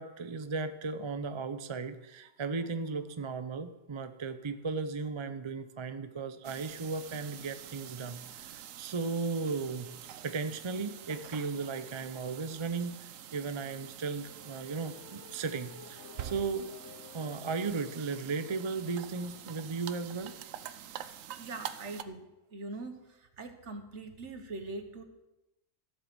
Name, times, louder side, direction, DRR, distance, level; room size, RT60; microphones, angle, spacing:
voice 1, 0.0-16.7 17.1-20.3, right 4 dB, 35° right, 10 dB, 0.5 m, -36 dB
sound 1, 6.4-22.0, right 10 dB, 90° right, 1.1 m, -46 dB
sound 2, 14.2-18.2, left 9 dB, 70° left, 1.1 m, -53 dB
voice 2, 21.4-22.3 22.5-25.0, right 2 dB, 65° right, 7 dB, 1.5 m, -42 dB
14.5 x 7.8 x 6.1 m, 0.98 s
omnidirectional pair, 1.3 m